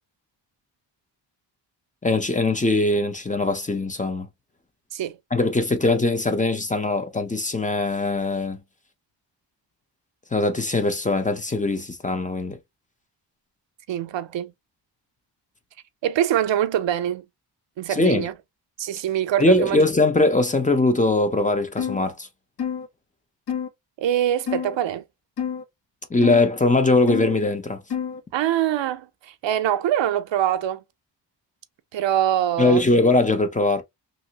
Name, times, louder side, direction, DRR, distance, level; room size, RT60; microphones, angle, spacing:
voice 1, 2.0-4.3 5.3-8.6 10.3-12.6 17.9-18.3 19.4-22.3 26.1-27.8 32.6-33.8, left 2 dB, 20° left, 0.5 m, -21 dB
voice 2, 13.9-14.5 16.0-17.2 17.8-18.3 18.8-19.9 24.0-25.0 28.3-30.8 31.9-32.8, right 11 dB, 80° right, 0.5 m, -24 dB
sound 1, 21.8-22.0 22.6-22.9 23.5-23.7 24.5-24.8 25.4-25.6 26.2-26.4 27.1-27.3 27.9-28.2, left 8 dB, 60° left, 1.0 m, -28 dB
2.9 x 2.7 x 2.7 m
wide cardioid pair, 135°, 44 cm